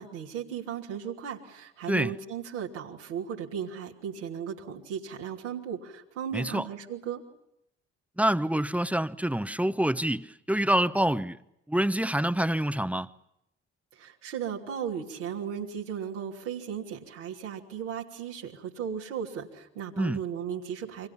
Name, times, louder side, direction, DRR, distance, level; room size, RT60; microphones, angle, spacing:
voice 1, 0.0-7.2 13.9-21.1, right 8 dB, 80° right, 3.1 m, -36 dB
voice 2, 6.3-6.7 8.2-11.4 11.7-13.1 20.0-20.2, right 1 dB, 5° right, 1.1 m, -26 dB
29.5 x 25.0 x 5.7 m
hypercardioid pair, 45°, 35 cm